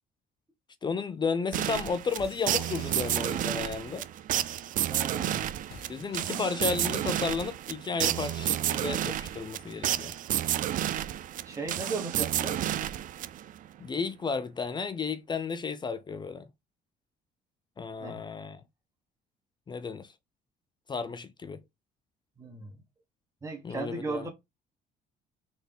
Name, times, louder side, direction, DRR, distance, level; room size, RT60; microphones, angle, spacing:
voice 1, 0.8-4.1 5.9-10.1 13.8-16.5 17.8-18.6 19.7-20.1 20.9-21.6 23.6-24.3, left 5 dB, 25° left, 0.4 m, -33 dB
sound 1, 1.5-13.7, right 12 dB, 55° right, 0.4 m, -31 dB
sound 2, 2.2-3.9 5.6-6.8, left 5 dB, 75° left, 1.1 m, -50 dB
voice 2, 4.9-5.5 11.4-12.6 18.0-18.2 22.4-22.8 23.4-24.3, right 3 dB, 20° right, 1.1 m, -36 dB
4.0 x 2.8 x 3.4 m
cardioid pair, 110°, 17 cm